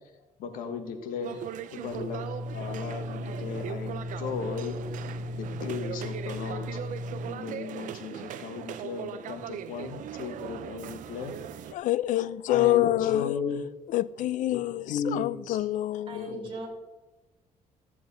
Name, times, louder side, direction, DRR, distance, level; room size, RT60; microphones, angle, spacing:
voice 1, 0.4-1.4 1.7-4.7 5.3-6.8 7.3-11.3 12.5-13.6 14.5-14.6 14.9-15.6 16.3-16.7, left 6 dB, 90° left, 1.3 m, -36 dB
sound 1, 1.2-11.7, right 10 dB, 70° right, 0.6 m, -39 dB
sound 2, 1.8-7.2, left 1 dB, 25° right, 2.0 m, -37 dB
voice 2, 11.7-13.4 13.9-16.4, left 14 dB, 70° left, 0.4 m, -26 dB
voice 3, 16.1-16.7, right 2 dB, 40° right, 3.5 m, -38 dB
14.0 x 7.6 x 4.1 m
cardioid pair, 125°, 14 cm